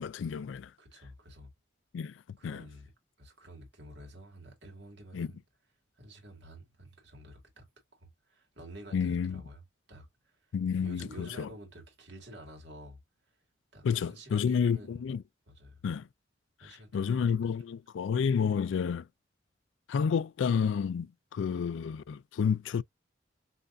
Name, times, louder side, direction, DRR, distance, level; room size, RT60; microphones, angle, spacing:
voice 1, 0.0-0.7 1.9-2.1 2.4-2.7 5.1-5.3 8.9-9.4 10.5-11.5 13.8-15.2 15.8-16.1 16.9-19.1 19.9-22.8, left 6 dB, 85° left, 0.3 m, -30 dB
voice 2, 0.8-1.5 2.4-2.9 3.2-5.4 6.0-7.7 7.9-10.4 10.8-13.0 13.7-15.0 15.5-15.8 16.6-17.4, right 1 dB, 70° right, 1.9 m, -50 dB
5.6 x 2.5 x 2.5 m
head